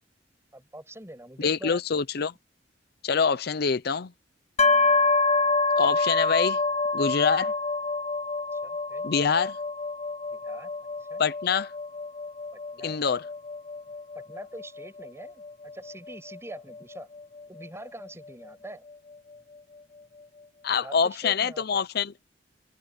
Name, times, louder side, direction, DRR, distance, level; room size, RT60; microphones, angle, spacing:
voice 1, 0.5-1.8 8.5-9.1 10.3-10.7 11.0-11.2 12.5-13.0 14.1-17.1 17.5-18.9 20.7-21.8, right 1 dB, 15° right, 8.0 m, -44 dB
voice 2, 1.4-2.3 3.0-4.1 5.8-6.6 6.9-7.5 9.0-9.6 11.2-11.7 12.8-13.3 20.6-22.1, left 6 dB, 60° left, 0.6 m, -25 dB
sound 1, 4.6-18.3, left 3 dB, 35° left, 1.4 m, -27 dB
head